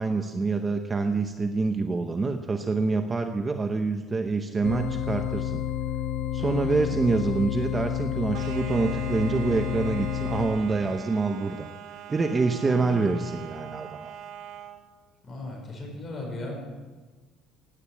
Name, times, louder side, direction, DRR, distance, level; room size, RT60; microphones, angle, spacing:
voice 1, 0.0-5.6 6.3-11.7 12.1-14.1, right 3 dB, 15° right, 6 dB, 0.7 m, -26 dB
sound 1, 4.6-10.5, left 10 dB, 65° left, 1.9 m, -30 dB
voice 2, 6.4-7.0 12.7-13.1 15.2-16.7, left 2 dB, 25° left, 0 dB, 5.1 m, -37 dB
sound 2, 8.3-14.8, right 10 dB, 65° right, 1.9 m, -42 dB
16.5 x 9.1 x 8.4 m, 1.3 s
cardioid pair, 170°, 0 cm